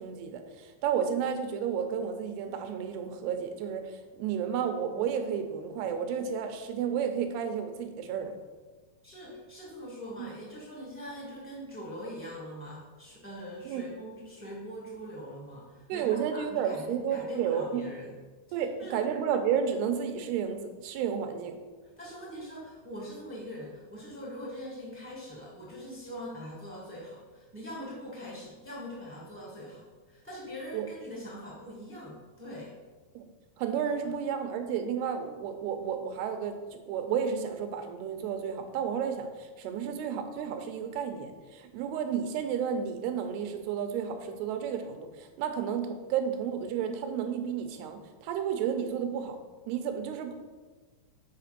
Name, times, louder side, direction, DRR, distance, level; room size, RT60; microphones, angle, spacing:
voice 1, 0.0-8.4 13.7-13.8 15.9-17.8 18.5-21.6 30.7-30.9 33.1-33.3 33.6-49.4 49.7-50.3, right 7 dB, 90° right, 7 dB, 2.8 m, -32 dB
voice 2, 9.0-18.1 18.5-19.0 22.0-32.7, equal, 10° right, -6 dB, 0.5 m, -43 dB
6.7 x 5.2 x 6.6 m, 1.3 s
omnidirectional pair, 4.5 m